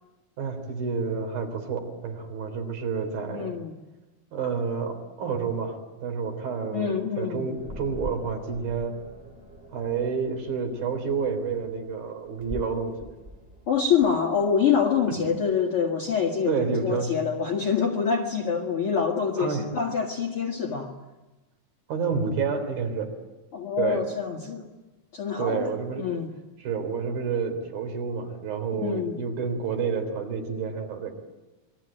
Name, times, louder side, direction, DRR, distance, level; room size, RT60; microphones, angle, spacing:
voice 1, 0.4-3.5 4.3-9.0 9.7-13.1 15.1-15.2 16.5-17.1 19.4-19.6 21.9-23.1 23.8-24.0 25.4-26.0 26.6-31.1, right 5 dB, 70° right, 6 dB, 5.3 m, -29 dB
voice 2, 3.3-3.8 6.7-7.4 13.7-21.0 23.5-24.7 25.1-25.7 26.0-26.3 28.8-29.1, left 6 dB, 45° left, -1 dB, 2.3 m, -26 dB
sound 1, 7.6-15.6, right 1 dB, 15° right, 2.6 m, -44 dB
27.5 x 21.5 x 9.0 m, 1.1 s
omnidirectional pair, 4.4 m